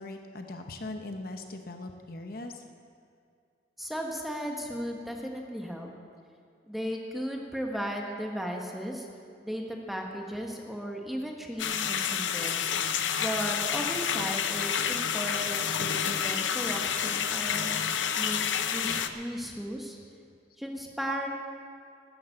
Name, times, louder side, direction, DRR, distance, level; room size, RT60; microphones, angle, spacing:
voice 1, 0.0-2.6 19.5-19.6, left 2 dB, 50° left, 5 dB, 0.9 m, -40 dB
voice 2, 3.8-5.9 6.7-9.1 9.4-12.7 13.2-17.7 18.2-18.4 18.7-20.0 20.6-21.3, equal, ahead, 1 dB, 1.3 m, -35 dB
sound 1, 11.6-19.1, left 8 dB, 85° left, 0.7 m, -29 dB
13.0 x 9.9 x 7.7 m, 2.3 s
head